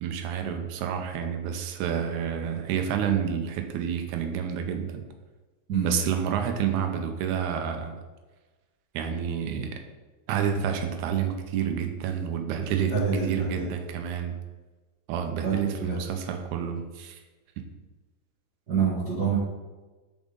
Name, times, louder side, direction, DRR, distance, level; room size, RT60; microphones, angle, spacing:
voice 1, 0.0-5.1 5.8-7.9 8.9-9.8 10.3-13.0 13.2-14.4 15.1-17.2, right 8 dB, 80° right, 5 dB, 1.8 m, -29 dB
voice 2, 12.9-13.7 15.4-16.0 18.7-19.4, right 6 dB, 60° right, -6 dB, 1.0 m, -27 dB
6.9 x 5.2 x 3.8 m, 1.2 s
omnidirectional pair, 3.9 m